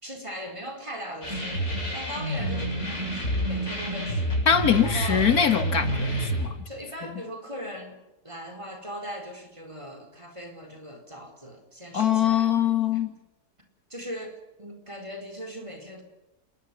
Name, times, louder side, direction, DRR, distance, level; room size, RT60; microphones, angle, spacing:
voice 1, 0.0-4.4 4.8-5.3 6.7-12.5 12.9-13.0 13.9-16.0, equal, 20° right, 4 dB, 4.6 m, -39 dB
sound 1, 1.2-6.5, right 1 dB, 45° left, 8.1 m, -28 dB
voice 2, 4.5-6.5 11.9-13.1, left 8 dB, 65° left, 9 dB, 1.9 m, -23 dB
27.5 x 21.5 x 7.1 m, 0.96 s
omnidirectional pair, 1.7 m